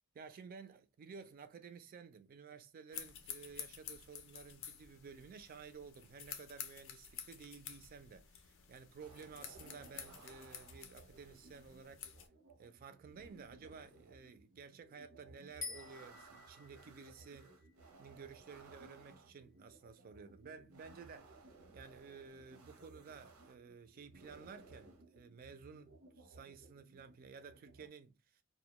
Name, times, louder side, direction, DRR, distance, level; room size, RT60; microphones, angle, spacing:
voice 1, 0.1-12.1 12.6-17.6 18.0-21.5 21.7-28.4, right 5 dB, 45° right, 0.3 m, -54 dB
sound 1, 2.9-12.3, left 8 dB, 65° left, 0.4 m, -51 dB
sound 2, 9.0-27.9, right 3 dB, 90° right, 0.6 m, -60 dB
sound 3, 15.6-19.0, left 3 dB, 20° left, 0.6 m, -51 dB
2.1 x 2.1 x 2.8 m
head